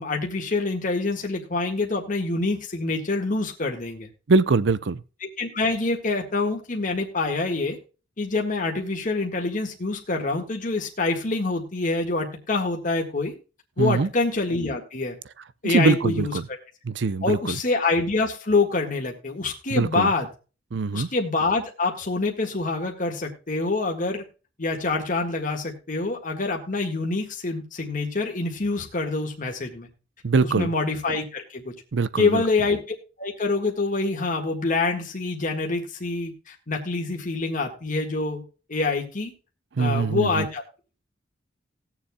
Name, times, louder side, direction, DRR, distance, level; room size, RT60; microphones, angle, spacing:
voice 1, 0.0-4.1 5.4-7.8 8.2-13.3 13.8-15.2 15.6-16.3 17.2-20.3 20.9-24.2 24.6-29.9 30.4-31.7 32.2-32.8 33.2-38.4 38.7-39.3 39.8-40.6, left 3 dB, 45° left, 1.7 m, -26 dB
voice 2, 4.3-5.0 13.8-14.1 15.6-16.4 16.8-17.6 19.7-20.1 20.7-21.1 30.2-30.7 31.9-32.4 39.8-40.4, right 4 dB, 65° right, 0.6 m, -22 dB
19.5 x 7.2 x 2.2 m
head